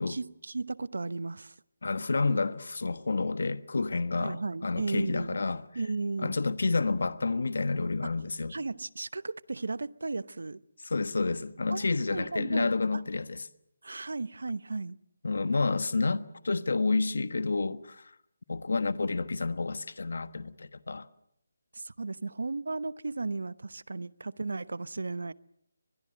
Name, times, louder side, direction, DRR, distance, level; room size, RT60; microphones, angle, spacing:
voice 1, 0.1-1.5 4.2-5.4 5.7-6.3 8.0-8.2 8.5-10.6 11.7-13.0 13.8-15.0 21.7-25.3, right 3 dB, 85° right, 0.9 m, -35 dB
voice 2, 1.8-5.6 6.2-8.5 10.8-13.5 15.2-18.1 18.5-21.1, left 3 dB, 70° left, 1.3 m, -29 dB
24.0 x 21.5 x 7.9 m
hypercardioid pair, 175°, 0 cm